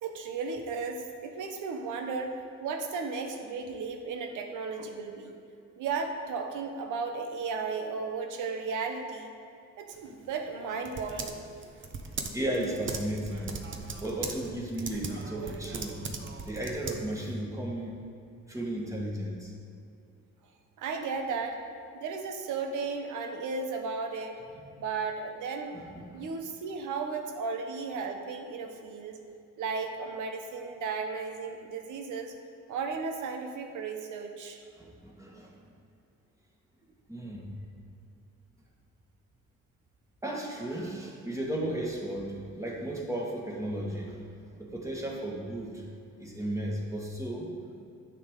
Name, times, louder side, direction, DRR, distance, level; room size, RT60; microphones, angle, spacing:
voice 1, 0.0-5.4 5.8-9.3 9.8-11.4 20.8-21.6 21.9-24.4 24.8-25.7 26.1-29.2 29.6-32.3 32.7-34.6, right 4 dB, 80° right, 4 dB, 1.0 m, -35 dB
Typing, 9.9-17.4, right 4 dB, 40° right, 0.9 m, -40 dB
voice 2, 12.3-13.6 14.0-16.0 16.5-18.1 18.5-19.5 24.5-24.6 25.7-26.2 34.8-35.7 37.1-37.5 40.2-45.9 46.2-47.7, right 1 dB, 10° right, -2 dB, 1.8 m, -35 dB
10.0 x 6.9 x 3.8 m, 2.6 s
cardioid pair, 90°, 30 cm